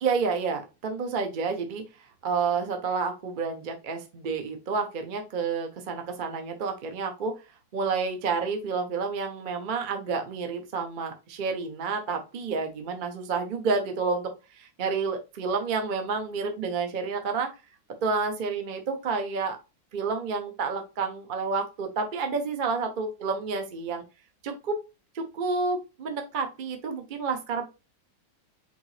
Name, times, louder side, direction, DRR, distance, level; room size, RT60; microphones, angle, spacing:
voice 1, 0.0-1.8 2.2-7.3 7.7-17.5 18.0-19.6 19.9-24.0 24.4-24.8 25.1-27.6, right 4 dB, 60° right, 5 dB, 0.5 m, -29 dB
5.0 x 2.9 x 3.2 m, 0.28 s
omnidirectional pair, 2.0 m